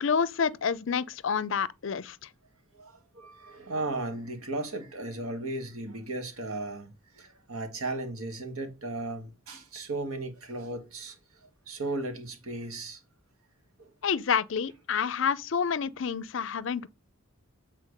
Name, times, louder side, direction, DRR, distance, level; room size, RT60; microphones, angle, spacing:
voice 1, 0.0-2.2 14.0-16.9, left 6 dB, 60° left, 0.5 m, -28 dB
voice 2, 2.8-11.1 11.7-13.0, right 2 dB, 80° right, 1.6 m, -36 dB
8.2 x 4.2 x 5.2 m
head